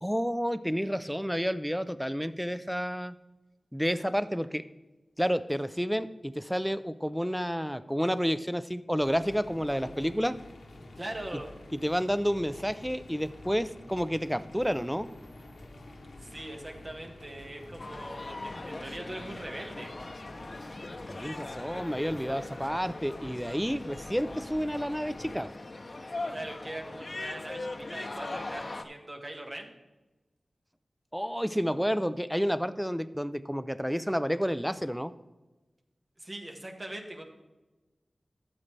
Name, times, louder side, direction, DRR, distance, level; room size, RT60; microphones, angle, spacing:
voice 1, 0.0-3.1 3.7-4.6 5.2-10.4 11.8-15.1 21.1-25.5 31.1-35.1, equal, ahead, 14 dB, 0.5 m, -30 dB
sound 1, 9.0-25.3, left 2 dB, 90° left, 1.1 m, -49 dB
voice 2, 11.0-11.5 16.2-19.9 26.3-29.7 36.2-37.2, right 1 dB, 45° right, 2 dB, 1.6 m, -41 dB
sound 2, 17.8-28.8, left 2 dB, 55° left, 0.8 m, -40 dB
12.5 x 7.4 x 3.3 m, 1.1 s
cardioid pair, 40°, 0 cm